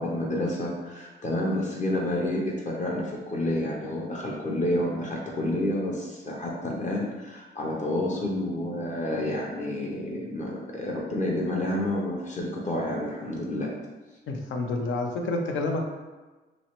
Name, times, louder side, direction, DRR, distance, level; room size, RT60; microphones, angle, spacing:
voice 1, 0.0-13.7, left 1 dB, 40° left, -2 dB, 0.6 m, -29 dB
voice 2, 14.3-15.8, left 2 dB, 85° left, 2 dB, 0.6 m, -28 dB
3.1 x 3.0 x 2.9 m, 1.2 s
cardioid pair, 135°, 20 cm